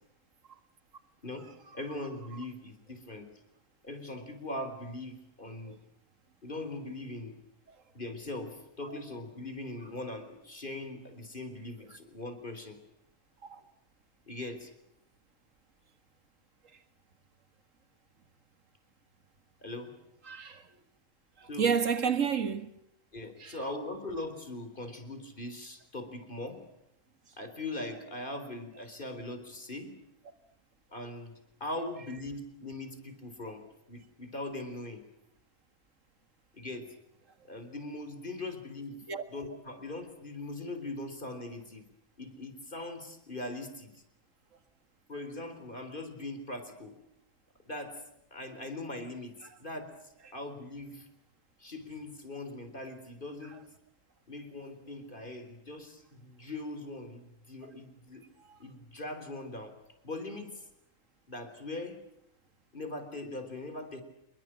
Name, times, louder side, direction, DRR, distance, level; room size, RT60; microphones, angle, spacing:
voice 1, 1.7-3.3 3.8-5.8 6.4-7.4 7.9-12.8 14.3-14.7 19.6-19.9 21.5-21.8 23.1-26.6 27.4-29.9 30.9-35.0 36.5-36.9 37.5-39.0 39.3-41.9 42.2-44.0 45.1-47.0 47.6-48.0 48.3-49.3 49.6-49.9 50.3-51.1 51.6-53.6 54.3-58.2 58.6-59.7 60.0-60.6 61.3-62.0 62.7-64.0, left 2 dB, 35° left, 4.2 m, -40 dB
voice 2, 20.3-20.6 21.4-22.7 23.4-23.6 39.1-39.2, right 6 dB, 60° right, 2.1 m, -30 dB
27.5 x 22.0 x 7.7 m
omnidirectional pair, 1.5 m